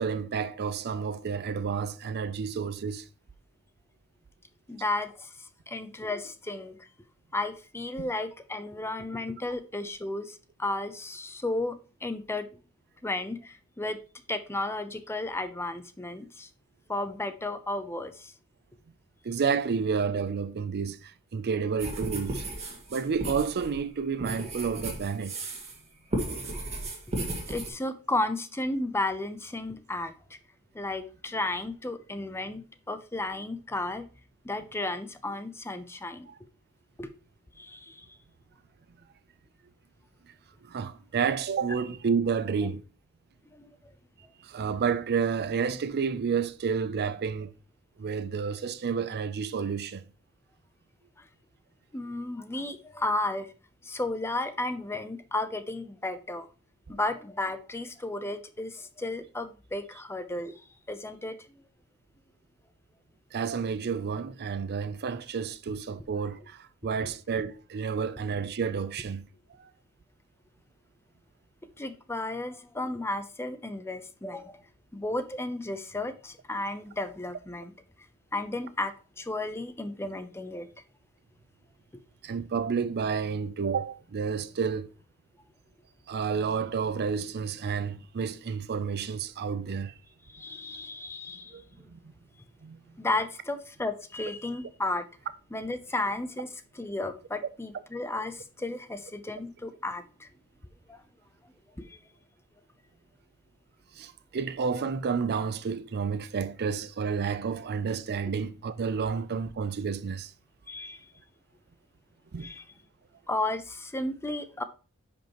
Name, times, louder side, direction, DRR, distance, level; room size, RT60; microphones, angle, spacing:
voice 1, 0.0-3.1 19.2-22.5 22.9-25.3 36.3-36.4 40.7-42.8 44.4-47.5 48.0-50.0 63.3-69.3 69.6-69.7 82.2-84.9 86.1-89.9 91.5-92.0 92.6-92.8 104.0-110.3 112.3-112.5, right 6 dB, 50° right, 0.5 m, -30 dB
voice 2, 4.7-6.9 7.3-12.6 13.0-14.0 14.3-16.5 16.9-18.3 26.8-26.9 27.5-30.4 30.7-34.1 34.4-36.3 37.0-37.1 37.6-38.1 43.5-43.7 51.2-51.3 51.9-53.5 53.8-56.5 56.9-60.6 60.9-61.4 71.8-74.6 74.9-77.7 78.3-80.7 90.3-91.9 93.0-95.1 95.5-100.3 100.9-101.0 101.8-102.0 110.7-111.1 112.4-112.6 113.3-114.6, left 2 dB, 10° left, 0.6 m, -33 dB
sound 1, 21.8-25.8 26.1-27.7, right 1 dB, 30° right, 1.9 m, -35 dB
10.5 x 5.2 x 3.0 m
head